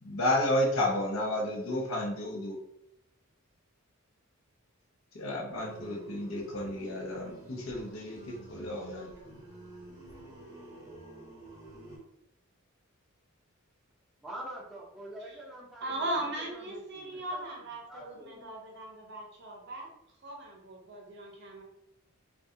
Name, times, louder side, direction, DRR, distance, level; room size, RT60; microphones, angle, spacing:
voice 1, 0.0-2.6 5.1-9.4, left 1 dB, 65° left, -1 dB, 0.6 m, -32 dB
sound 1, 5.6-12.0, right 1 dB, 30° right, 0.9 m, -49 dB
voice 2, 14.2-16.2 16.5-17.4 17.9-18.5, right 1 dB, ahead, -6 dB, 0.6 m, -45 dB
voice 3, 15.8-19.9 20.2-21.6, right 1 dB, 50° right, 0 dB, 0.6 m, -38 dB
2.3 x 2.2 x 2.7 m, 0.77 s
head